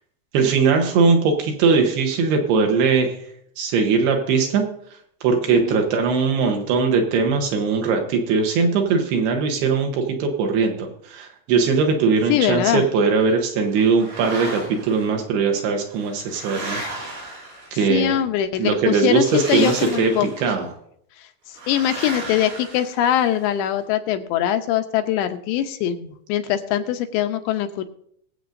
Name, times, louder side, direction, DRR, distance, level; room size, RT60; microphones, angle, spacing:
voice 1, 0.3-3.1 3.6-4.7 5.2-17.3 17.7-18.2 18.6-20.1 20.4-20.7, right 5 dB, 70° right, 4 dB, 2.7 m, -20 dB
voice 2, 5.5-5.8 12.3-12.8 17.9-20.3 21.7-27.8, left 11 dB, 80° left, 7 dB, 2.8 m, -22 dB
sound 1, 13.8-15.0 15.8-18.0 19.1-20.5 21.5-23.4, right 2 dB, 90° right, 8.1 m, -34 dB
22.5 x 7.8 x 2.6 m, 0.70 s
omnidirectional pair, 5.3 m